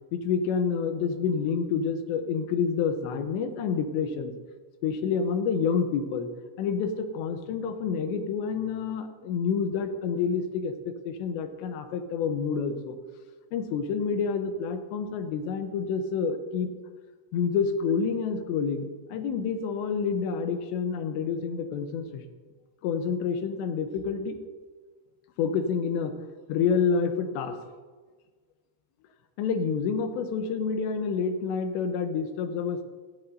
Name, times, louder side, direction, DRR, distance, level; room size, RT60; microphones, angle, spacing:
voice 1, 0.1-4.3 4.8-6.3 6.6-13.0 13.5-16.7 17.3-22.2 22.8-24.4 25.4-26.1 26.5-27.6 29.4-32.8, left 6 dB, 85° left, 7 dB, 3.2 m, -28 dB
16.0 x 13.5 x 2.7 m, 1.4 s
omnidirectional pair, 5.0 m